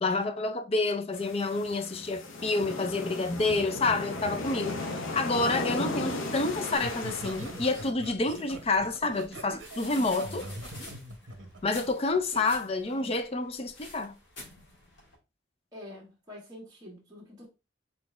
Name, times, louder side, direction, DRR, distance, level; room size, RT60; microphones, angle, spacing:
voice 1, 0.0-10.5 11.6-14.1, left 3 dB, 30° left, 0.4 m, -29 dB
sound 1, 1.1-7.9, left 2 dB, 75° left, 0.8 m, -36 dB
Laughter, 6.7-12.4 12.9-13.2, right 1 dB, 65° right, 0.9 m, -42 dB
sound 2, 8.3-15.2, left 2 dB, 60° left, 1.8 m, -49 dB
voice 2, 15.7-17.5, left 1 dB, 20° right, 1.5 m, -46 dB
4.2 x 3.9 x 3.2 m
head